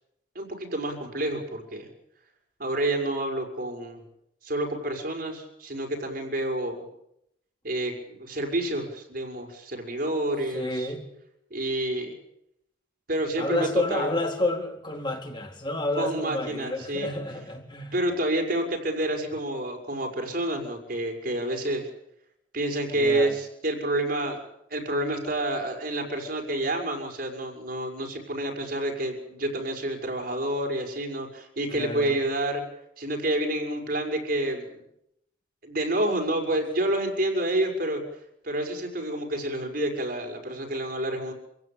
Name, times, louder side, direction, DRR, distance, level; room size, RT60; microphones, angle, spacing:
voice 1, 0.3-1.9 2.6-4.0 4.4-6.9 7.6-10.9 11.5-12.2 13.1-14.1 16.0-17.1 17.9-21.9 22.5-24.5 24.7-32.6 33.0-34.8 35.6-38.0 38.4-41.3, right 1 dB, 50° right, 5.8 m, -29 dB
voice 2, 10.5-11.0 13.4-17.9 22.9-23.3 31.7-32.2, left 1 dB, 25° left, 3.9 m, -30 dB
27.0 x 17.0 x 8.9 m
head